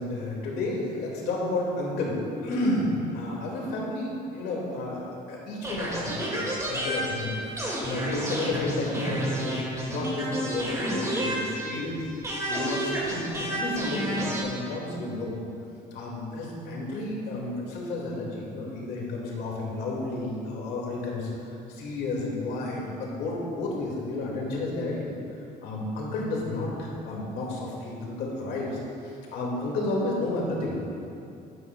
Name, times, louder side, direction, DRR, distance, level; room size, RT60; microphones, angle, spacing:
voice 1, 0.0-2.9 3.1-7.3 7.8-9.6 9.9-12.0 12.5-15.3 15.9-21.3 21.7-25.1 25.6-30.8, left 2 dB, 75° left, -3 dB, 2.2 m, -31 dB
sound 1, 5.6-11.9 12.2-14.4, right 1 dB, 20° right, 2.2 m, -30 dB
11.0 x 10.5 x 2.4 m, 2.6 s
cardioid pair, 110°, 17 cm